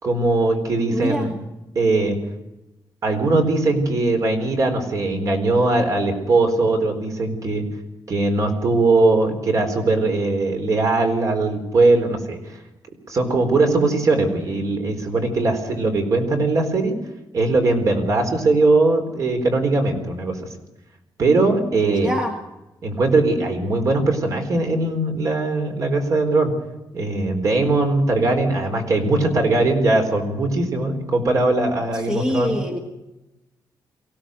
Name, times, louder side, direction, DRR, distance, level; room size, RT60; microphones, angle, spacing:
voice 1, 0.0-1.3 1.7-2.2 3.0-7.6 8.1-12.6 13.1-16.9 17.3-20.4 21.2-22.1 22.8-26.5 26.9-32.6, right 2 dB, 45° right, 4 dB, 4.1 m, -20 dB
voice 2, 0.9-1.3 21.9-22.3 31.9-32.8, equal, 10° right, 3 dB, 1.7 m, -25 dB
24.0 x 16.5 x 6.6 m, 0.97 s
wide cardioid pair, 175°, 8 cm